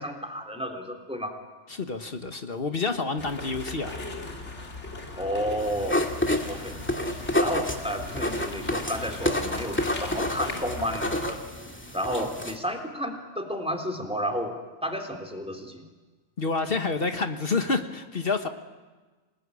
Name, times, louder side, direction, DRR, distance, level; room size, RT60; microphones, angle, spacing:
voice 1, 0.0-1.4 5.1-6.0 6.4-6.8 7.4-11.4 11.9-14.6 14.8-15.8, equal, 5° right, 4 dB, 3.5 m, -31 dB
voice 2, 1.7-3.9 16.4-18.5, left 4 dB, 55° left, 7 dB, 1.6 m, -28 dB
sound 1, 3.2-11.3, left 2 dB, 90° left, 3.1 m, -38 dB
Writing-with-Pen, 5.6-12.6, left 1 dB, 10° left, 2.1 m, -29 dB
27.0 x 20.0 x 9.9 m, 1.3 s
omnidirectional pair, 1.1 m